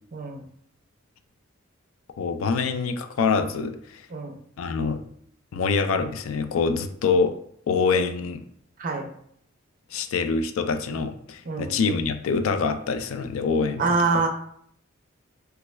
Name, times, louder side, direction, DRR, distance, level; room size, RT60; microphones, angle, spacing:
voice 1, 2.2-4.1 4.6-5.0 5.5-7.4 7.7-8.4 9.9-14.1, left 5 dB, 80° left, 9 dB, 0.4 m, -25 dB
voice 2, 11.5-11.8 13.8-14.3, right 4 dB, 40° right, 4 dB, 0.5 m, -25 dB
3.4 x 2.2 x 3.0 m, 0.65 s
head